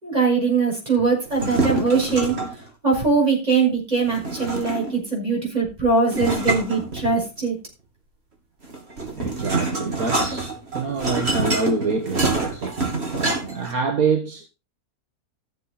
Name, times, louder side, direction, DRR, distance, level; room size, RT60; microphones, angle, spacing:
voice 1, 0.0-2.3 2.8-7.6, right 4 dB, 25° right, 6.5 m, -21 dB
sound 1, 1.3-2.6 4.1-5.1 6.1-7.5 8.6-13.7, right 3 dB, 40° right, 3.4 m, -26 dB
voice 2, 9.1-12.8 13.5-14.5, right 4 dB, 65° right, 1.9 m, -26 dB
14.5 x 7.6 x 4.2 m
omnidirectional pair, 1.6 m